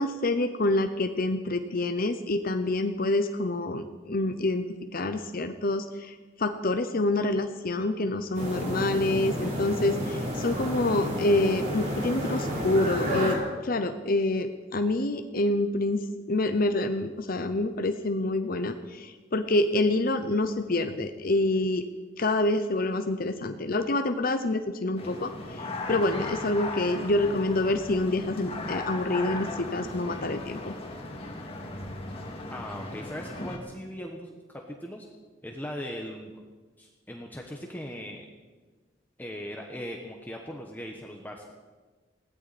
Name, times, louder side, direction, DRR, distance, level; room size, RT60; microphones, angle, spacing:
voice 1, 0.0-4.7 4.9-16.0 16.3-21.8 22.2-30.7, left 2 dB, 50° left, 8 dB, 0.8 m, -27 dB
sound 1, 8.3-13.3, equal, 45° right, 6.0 m, -31 dB
sound 2, 25.0-33.6, left 2 dB, 30° left, 2.3 m, -37 dB
voice 2, 32.5-35.1 35.4-36.3 36.8-38.3 39.2-41.6, equal, 10° left, 1 dB, 1.2 m, -39 dB
20.5 x 16.5 x 4.3 m, 1.4 s
head